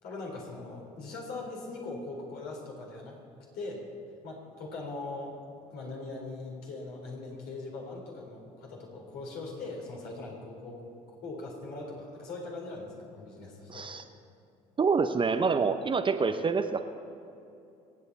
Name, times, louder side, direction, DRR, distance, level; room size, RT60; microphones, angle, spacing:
voice 1, 0.0-3.8 4.2-5.4 5.7-10.8 11.2-13.9, left 3 dB, 55° left, -1 dB, 3.8 m, -41 dB
voice 2, 13.7-14.0 14.8-16.8, right 5 dB, 25° right, 8 dB, 0.9 m, -27 dB
26.0 x 8.7 x 4.1 m, 2.7 s
figure-of-eight pair, 60°, 19 cm